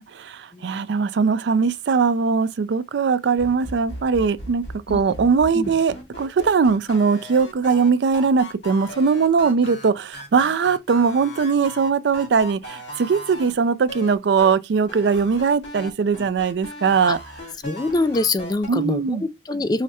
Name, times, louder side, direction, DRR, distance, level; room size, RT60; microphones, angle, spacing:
voice 1, 0.0-17.2 18.7-19.2, right 5 dB, 70° right, 0.4 m, -20 dB
voice 2, 0.5-0.9 4.9-5.0 5.5-5.7 17.0-17.2 17.6-19.8, left 2 dB, 20° left, 0.3 m, -24 dB
sound 1, 3.4-13.5 13.9-14.5 14.9-18.7, equal, 70° left, 2.7 m, -37 dB
4.8 x 2.1 x 4.1 m
head